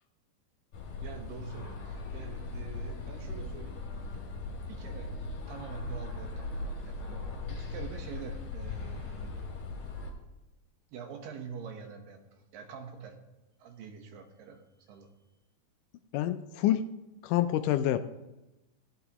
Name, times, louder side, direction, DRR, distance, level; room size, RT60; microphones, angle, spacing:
sound 1, 0.7-10.1, left 3 dB, 60° left, 3.1 m, -39 dB
voice 1, 1.0-3.8 4.7-5.1 5.5-7.2 7.5-9.5 10.9-13.2 13.6-15.1, right 6 dB, 85° right, 5 dB, 2.9 m, -45 dB
voice 2, 16.1-16.8 17.2-18.0, left 12 dB, 80° left, 10 dB, 2.1 m, -27 dB
15.0 x 11.5 x 3.0 m, 1.0 s
omnidirectional pair, 3.9 m